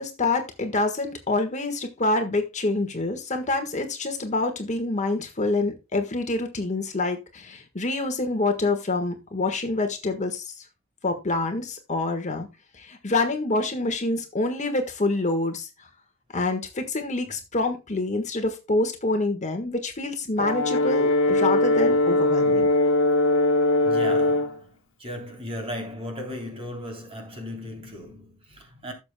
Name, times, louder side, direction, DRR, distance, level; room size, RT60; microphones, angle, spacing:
voice 1, 0.0-10.6 11.0-12.5 12.7-15.9 16.3-22.7, left 2 dB, 35° left, 1.5 m, -26 dB
Brass instrument, 20.4-24.6, left 2 dB, 65° left, 1.6 m, -21 dB
voice 2, 23.8-24.7 25.0-28.9, equal, 25° right, 3.3 m, -36 dB
16.0 x 7.2 x 2.2 m
head